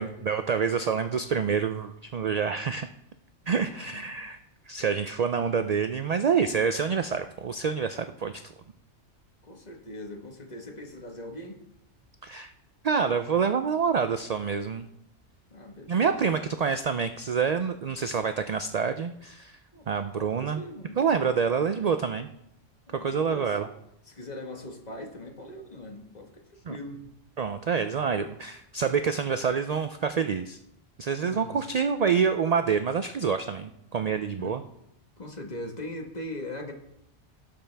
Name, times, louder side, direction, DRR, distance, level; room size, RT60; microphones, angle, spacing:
voice 1, 0.0-2.9 3.5-4.4 4.7-8.5 12.2-12.5 12.8-14.9 15.9-19.6 19.9-20.6 21.0-22.3 22.9-23.7 26.7-26.8 27.4-30.6 31.0-34.6, right 6 dB, 60° right, 9 dB, 0.4 m, -27 dB
voice 2, 3.5-4.1 9.4-11.6 15.5-16.1 16.5-16.6 19.7-19.9 20.2-21.0 22.9-23.7 24.1-26.4 26.7-27.0 31.2-31.7 34.4-34.5 35.2-36.7, left 1 dB, 35° left, 3 dB, 1.5 m, -40 dB
17.5 x 6.9 x 3.4 m, 0.79 s
omnidirectional pair, 1.2 m